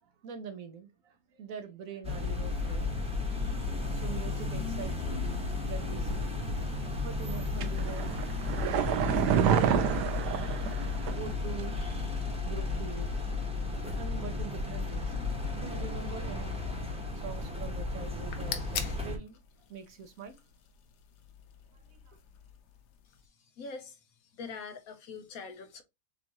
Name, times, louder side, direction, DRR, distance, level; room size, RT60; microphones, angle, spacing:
voice 1, 0.0-3.0 3.9-5.1 5.6-6.3 7.0-8.1 8.6-10.0 11.1-11.8 12.4-15.1 15.6-16.6 17.2-19.4 19.7-20.4 21.7-22.2, right 6 dB, 65° right, 1.0 m, -44 dB
sound 1, 2.0-19.2, left 3 dB, 5° right, 0.9 m, -33 dB
sound 2, 7.6-11.3 11.6-11.7, right 9 dB, 90° right, 1.2 m, -28 dB
sound 3, 18.2-23.3, left 8 dB, 85° left, 1.4 m, -44 dB
voice 2, 23.6-24.0 24.4-25.8, left 4 dB, 65° left, 1.2 m, -43 dB
6.9 x 2.5 x 2.9 m
omnidirectional pair, 1.7 m